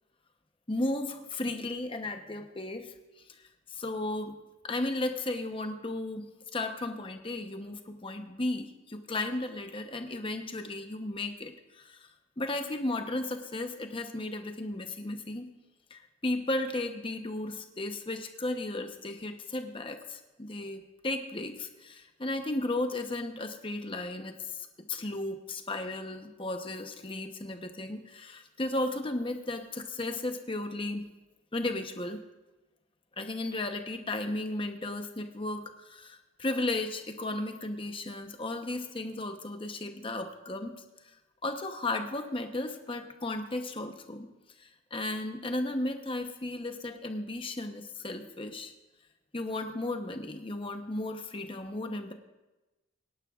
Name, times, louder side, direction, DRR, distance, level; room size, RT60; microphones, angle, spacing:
voice 1, 0.7-2.9 3.7-4.3 4.6-6.3 6.5-12.1 12.4-15.5 15.9-31.1 31.5-32.2 33.2-40.8 41.4-44.3 44.6-48.7 49.3-52.1, left 2 dB, 25° left, 6 dB, 0.9 m, -35 dB
24.0 x 10.5 x 2.4 m, 1.1 s
head